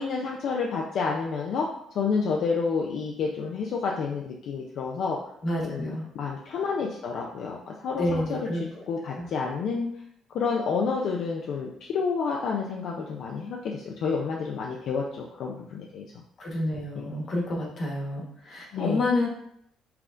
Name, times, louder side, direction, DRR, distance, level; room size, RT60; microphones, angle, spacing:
voice 1, 0.0-1.7 1.9-5.2 5.6-7.6 7.8-8.4 8.9-9.9 10.3-16.1 17.0-17.1 18.7-19.0, left 5 dB, 65° left, -1 dB, 0.5 m, -29 dB
voice 2, 5.4-6.0 8.0-8.8 9.1-9.3 16.4-19.3, left 2 dB, 40° left, -1 dB, 1.3 m, -29 dB
5.7 x 3.6 x 2.5 m, 0.71 s
cardioid pair, 130°, 0 cm